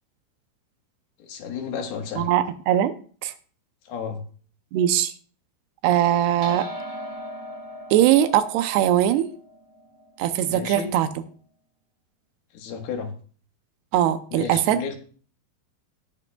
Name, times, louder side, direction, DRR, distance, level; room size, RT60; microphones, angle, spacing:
voice 1, 1.2-2.3 3.9-4.2 10.5-10.9 12.5-13.1 14.3-15.0, left 6 dB, 75° left, 3 dB, 3.3 m, -32 dB
voice 2, 2.2-2.9 3.2-3.3 4.7-5.1 5.8-6.7 7.9-9.3 10.2-11.1 13.9-14.8, right 11 dB, 85° right, 10 dB, 2.8 m, -20 dB
sound 1, 6.4-11.1, equal, 30° right, 1.0 m, -39 dB
18.5 x 8.6 x 2.3 m, 0.43 s
omnidirectional pair, 4.6 m